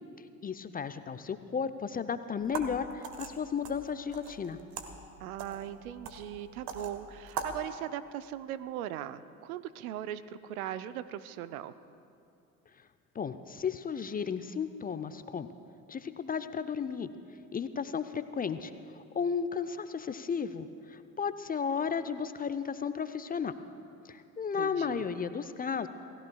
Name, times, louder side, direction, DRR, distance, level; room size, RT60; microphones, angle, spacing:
voice 1, 0.4-4.6 13.1-15.5 15.9-17.1 17.5-23.6 24.0-25.9, left 6 dB, 20° left, 11 dB, 0.6 m, -34 dB
sound 1, 2.4-7.6, right 6 dB, 55° right, 1.4 m, -42 dB
voice 2, 5.2-11.7 24.6-25.1, right 11 dB, 70° right, 14 dB, 0.6 m, -39 dB
28.0 x 17.0 x 2.3 m, 2.5 s
figure-of-eight pair, 55°, 44 cm